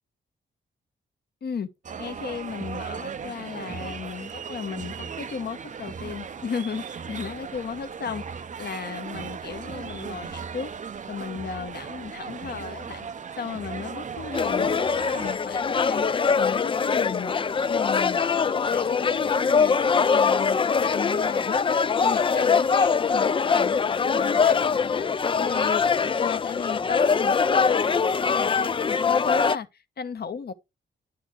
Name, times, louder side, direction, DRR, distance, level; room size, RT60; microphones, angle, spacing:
sound 1, 1.8-15.4, right 6 dB, 40° right, 0.6 m, -37 dB
voice 1, 2.0-8.2 8.6-10.7 11.1-13.1 13.4-17.3 17.6-21.6 22.0-30.5, left 6 dB, 55° left, 1.0 m, -35 dB
sound 2, 14.3-29.6, left 5 dB, 25° left, 0.3 m, -23 dB
10.0 x 4.3 x 4.4 m
cardioid pair, 95°, 20 cm